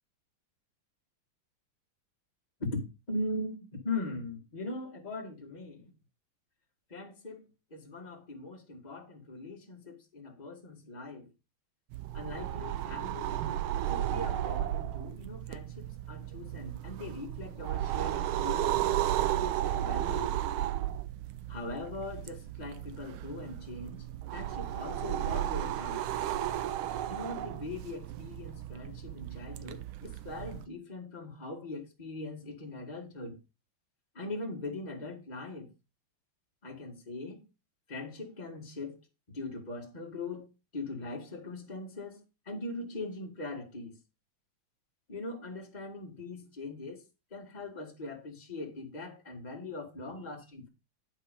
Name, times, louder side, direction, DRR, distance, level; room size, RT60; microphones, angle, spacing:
voice 1, 3.1-5.9 6.9-11.3 12.1-13.4 13.9-20.4 21.5-24.1 24.3-26.1 27.1-33.4 34.1-35.7 36.6-37.5 37.9-39.0 39.3-40.5 40.7-44.0 45.1-47.0 47.3-50.7, left 2 dB, 20° left, 2.0 m, -41 dB
sound 1, 11.9-30.6, right 12 dB, 90° right, 1.5 m, -34 dB
10.5 x 4.9 x 5.2 m
omnidirectional pair, 2.2 m